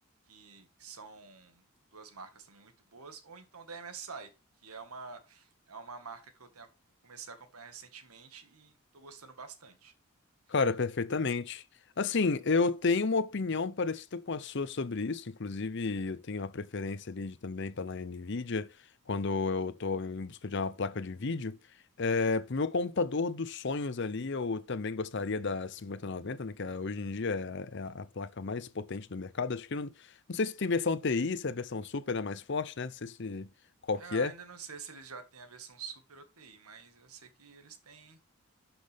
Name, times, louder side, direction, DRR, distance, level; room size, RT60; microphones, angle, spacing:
voice 1, 0.3-1.6 1.9-4.3 4.6-6.7 7.0-9.9 34.0-38.2, right 5 dB, 90° right, 1.8 m, -48 dB
voice 2, 10.5-11.6 12.0-18.7 19.1-21.6 22.0-29.9 30.3-33.5 33.9-34.3, left 4 dB, 55° left, 0.7 m, -32 dB
12.0 x 5.9 x 3.5 m
head